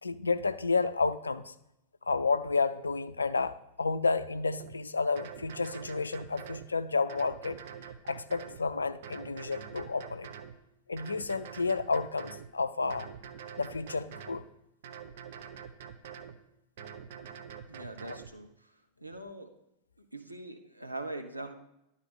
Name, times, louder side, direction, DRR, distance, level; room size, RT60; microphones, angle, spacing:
voice 1, 0.0-1.5 2.0-7.6 8.0-10.3 10.9-13.1 13.6-14.4 18.0-18.2, left 4 dB, 75° left, 13 dB, 0.4 m, -31 dB
sound 1, 4.6-4.7 5.2-6.7 7.1-8.6 9.0-10.6 11.0-12.5 12.9-14.4 14.8-16.4 16.8-18.3, right 7 dB, 55° right, 0.7 m, -45 dB
voice 2, 17.7-18.5 19.0-19.5 20.1-21.6, right 2 dB, 85° right, 5 dB, 0.9 m, -41 dB
11.5 x 4.1 x 6.2 m, 0.85 s
figure-of-eight pair, 90°, 0 cm